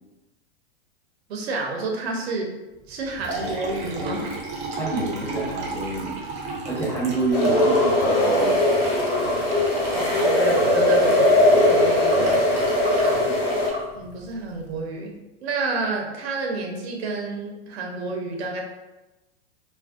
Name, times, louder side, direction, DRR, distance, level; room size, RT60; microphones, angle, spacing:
voice 1, 1.3-2.5 2.9-4.4 9.9-11.4 11.6-12.2 13.9-15.1 15.4-18.6, right 3 dB, 70° right, 1 dB, 0.6 m, -30 dB
Liquid, 2.9-14.8, right 2 dB, 20° right, 0.5 m, -34 dB
voice 2, 4.8-6.2 6.6-8.7, right 2 dB, 5° left, -7 dB, 0.8 m, -27 dB
sound 1, 7.3-13.7, left 1 dB, 55° left, 1.0 m, -19 dB
2.5 x 2.1 x 2.3 m, 1.1 s
hypercardioid pair, 115°, 32 cm